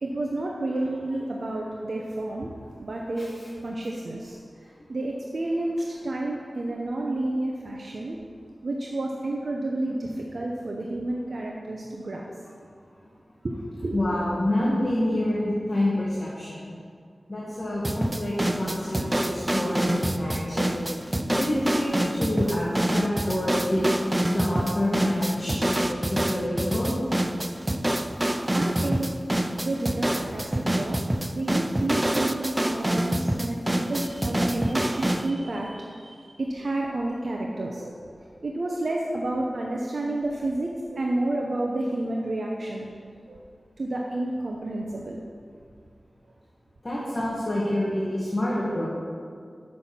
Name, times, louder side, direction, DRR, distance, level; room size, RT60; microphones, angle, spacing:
voice 1, 0.0-2.5 2.8-3.3 3.6-4.4 4.9-5.7 6.0-8.2 8.6-12.2 13.4-13.5 13.8-14.3 18.7-18.8 23.7-23.9 25.5-25.7 28.5-29.1 29.6-31.0 31.3-42.9 43.3-43.4 43.8-45.2, right 2 dB, 65° right, -1 dB, 0.8 m, -30 dB
voice 2, 13.9-16.6 17.3-20.7 21.3-23.9 24.3-27.0 46.8-48.9, left 1 dB, 35° left, -7 dB, 1.7 m, -27 dB
sound 1, 17.8-35.3, right 1 dB, 15° right, 0.4 m, -26 dB
7.7 x 6.3 x 5.6 m, 2.1 s
wide cardioid pair, 75°, 0 cm